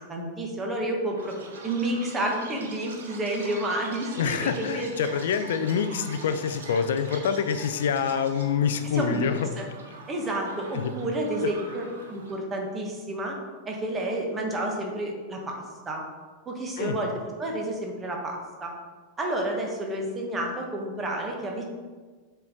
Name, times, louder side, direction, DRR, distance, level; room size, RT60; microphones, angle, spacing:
voice 1, 0.1-1.3 1.6-4.9 8.9-9.3 9.6-9.7 10.1-11.8 12.1-13.4 13.6-16.0 16.4-18.7 19.2-21.6, right 1 dB, 20° right, 0 dB, 1.5 m, -30 dB
Chirp tweet, 1.2-12.3, right 3 dB, 65° right, 1.1 m, -43 dB
voice 2, 4.2-9.5 10.7-10.9 11.4-11.5 16.8-17.0, left 7 dB, 60° left, 9 dB, 0.5 m, -26 dB
7.2 x 4.5 x 3.8 m, 1.4 s
figure-of-eight pair, 90°, 0 cm